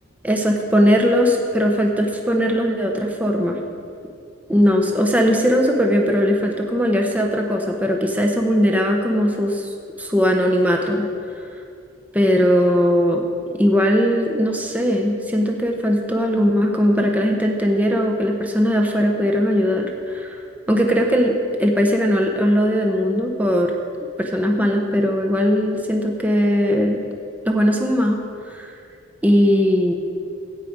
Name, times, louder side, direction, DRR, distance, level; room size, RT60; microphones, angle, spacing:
voice 1, 0.2-3.6 4.5-9.7 10.0-11.1 12.1-13.2 13.5-20.4 20.7-23.7 24.2-27.0 27.4-28.7 29.2-29.9, equal, 5° right, 1 dB, 0.8 m, -19 dB
14.5 x 4.9 x 8.7 m, 2.5 s
head